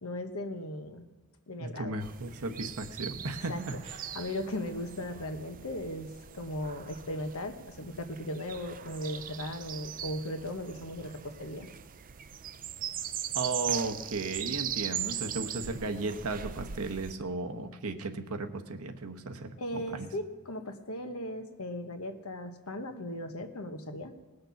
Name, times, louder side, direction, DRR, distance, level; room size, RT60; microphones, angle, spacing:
voice 1, 0.0-1.1 1.5-1.9 3.5-3.6 4.1-11.7 19.6-24.1, left 1 dB, 75° left, 6 dB, 1.2 m, -37 dB
voice 2, 1.6-4.0 13.3-20.1, right 3 dB, 80° right, 6 dB, 1.0 m, -35 dB
sound 1, 2.0-17.1, right 9 dB, 40° right, 0.5 m, -40 dB
20.0 x 6.7 x 5.8 m, 1.2 s
head